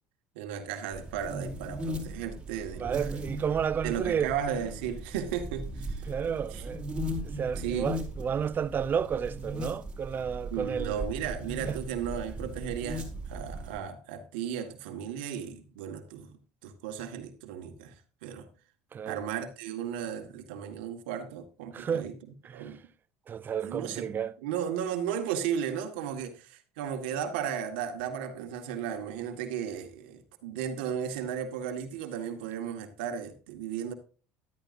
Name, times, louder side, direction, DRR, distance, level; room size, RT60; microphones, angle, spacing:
voice 1, 0.4-3.1 3.8-6.1 6.5-6.7 7.3-7.9 10.5-18.5 19.1-22.1 22.5-22.8 23.6-24.1 24.4-33.9, right 8 dB, 80° right, 1.9 m, -35 dB
sound 1, 0.9-13.8, right 1 dB, 15° right, 4.9 m, -38 dB
voice 2, 2.8-4.3 6.1-6.9 7.2-11.0 11.6-11.8 18.9-19.2 21.7-22.1 22.4-22.7 23.3-24.3, right 7 dB, 35° right, 0.8 m, -31 dB
14.5 x 12.5 x 2.7 m
supercardioid pair, 85°, 6 cm